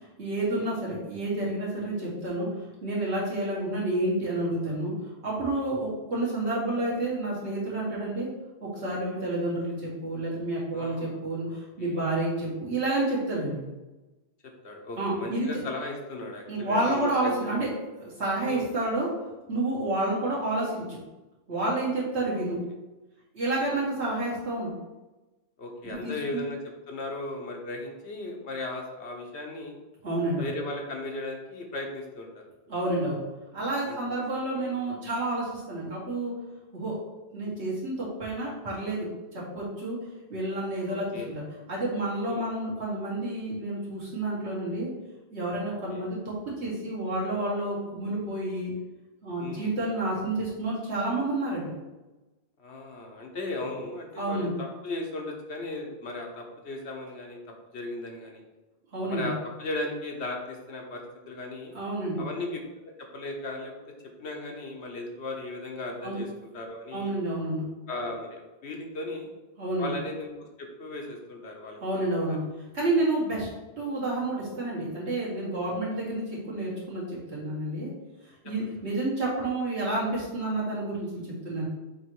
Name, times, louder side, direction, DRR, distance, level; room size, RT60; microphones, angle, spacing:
voice 1, 0.2-2.5 2.8-4.9 5.2-8.3 8.6-13.6 15.0-15.5 16.5-17.7 18.0-19.1 19.5-21.0 21.5-22.6 23.3-24.7 25.8-26.4 30.0-30.5 32.7-33.2 33.5-36.3 36.7-36.9 37.3-39.1 39.3-40.0 40.3-41.4 41.7-44.9 45.3-48.7 49.2-51.7 54.2-54.5 58.9-59.3 61.7-62.2 66.0-66.2 66.9-67.7 69.6-69.9 71.8-72.4 72.7-73.5 73.8-77.9 78.4-81.7, right 2 dB, 85° right, -6 dB, 2.4 m, -29 dB
voice 2, 10.7-11.2 11.5-12.1 14.4-17.6 18.5-18.7 23.6-23.7 25.6-26.6 26.9-29.8 30.4-32.4 33.9-34.0 34.5-34.7 40.9-41.3 42.3-42.4 45.9-46.0 49.4-49.7 52.6-57.4 57.7-58.4 59.1-61.7 62.2-62.6 62.8-63.7 64.2-66.3 66.5-67.1 67.9-69.3 69.8-72.4, left 2 dB, 85° left, 1 dB, 1.3 m, -37 dB
7.1 x 3.1 x 4.7 m, 1.1 s
omnidirectional pair, 1.1 m